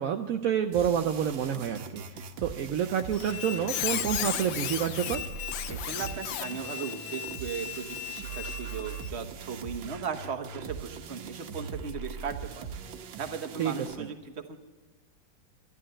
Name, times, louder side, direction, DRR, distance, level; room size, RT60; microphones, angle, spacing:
voice 1, 0.0-5.3 13.6-13.7 14.0-14.1, right 9 dB, 65° right, 5 dB, 0.8 m, -29 dB
sound 1, 0.7-14.0, right 6 dB, 90° right, 1.7 m, -41 dB
Squeak, 3.1-9.1, left 13 dB, 80° left, 1.4 m, -35 dB
voice 2, 5.7-12.7 13.2-14.6, right 6 dB, 40° right, 6 dB, 1.1 m, -37 dB
12.5 x 11.0 x 7.6 m, 1.4 s
omnidirectional pair, 2.1 m